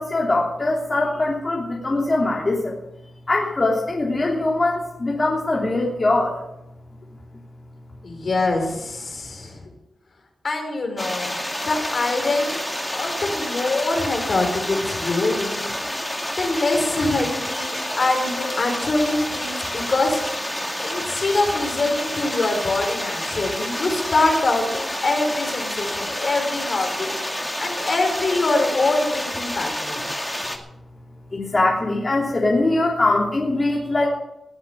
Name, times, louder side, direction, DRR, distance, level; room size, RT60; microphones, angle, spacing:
voice 1, 0.0-2.7 3.3-6.3 31.3-34.1, left 2 dB, 35° left, -3 dB, 3.1 m, -22 dB
voice 2, 8.0-9.7 10.4-11.4 11.6-12.7 12.9-15.7 16.4-20.2 20.8-27.1 27.6-30.0, left 2 dB, 55° left, 3 dB, 4.9 m, -24 dB
sound 1, 11.0-30.6, left 1 dB, 10° left, 2.4 m, -29 dB
20.0 x 8.0 x 6.9 m, 0.87 s
cardioid pair, 80°, 0 cm